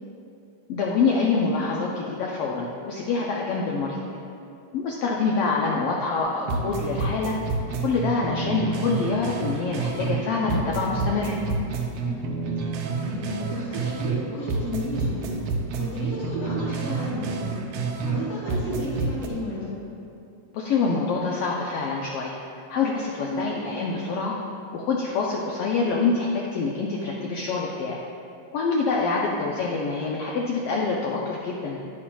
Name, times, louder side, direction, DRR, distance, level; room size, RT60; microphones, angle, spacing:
voice 1, 0.7-4.0 4.7-7.4 7.8-11.4 20.5-22.4 22.7-24.3 24.7-28.0 28.5-31.8, left 4 dB, 80° left, -2 dB, 1.3 m, -26 dB
voice 2, 3.8-4.2 12.0-12.6 13.0-15.3 15.7-17.6 18.0-19.7 23.2-23.7 29.1-29.4, left 1 dB, 35° left, -11 dB, 2.2 m, -33 dB
sound 1, 6.2-6.3 6.5-10.2 10.5-14.2 14.5-18.2 18.5-19.3, right 4 dB, 80° right, 2.1 m, -29 dB
10.5 x 8.4 x 2.3 m, 2.6 s
omnidirectional pair, 3.3 m